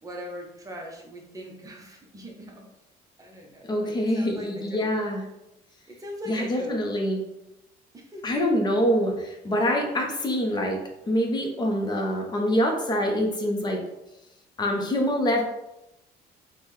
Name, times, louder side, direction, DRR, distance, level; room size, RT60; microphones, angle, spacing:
voice 1, 0.0-2.7 3.2-5.0 5.9-6.8 7.9-8.5, equal, 20° right, 1 dB, 0.7 m, -41 dB
voice 2, 3.7-5.2 6.3-7.2 8.2-10.8 11.1-13.8 14.6-15.4, equal, 25° left, 1 dB, 0.7 m, -25 dB
3.4 x 2.2 x 3.1 m, 0.91 s
cardioid pair, 110°, 17 cm